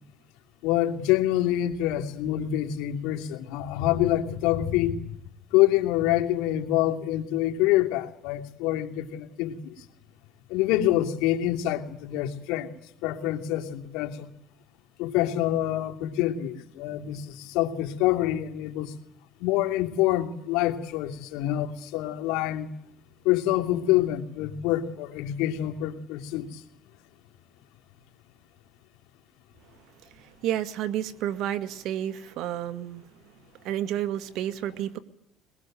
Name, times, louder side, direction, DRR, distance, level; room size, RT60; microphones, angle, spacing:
voice 1, 0.6-5.0 5.5-9.8 10.5-12.7 13.0-14.3 15.0-18.9 19.4-22.7 23.2-26.6, left 13 dB, 85° left, 3 dB, 2.9 m, -26 dB
voice 2, 29.7-33.1 33.3-35.0, right 11 dB, 70° right, 12 dB, 2.0 m, -31 dB
22.5 x 22.0 x 9.2 m, 0.72 s
cardioid pair, 125°, 0 cm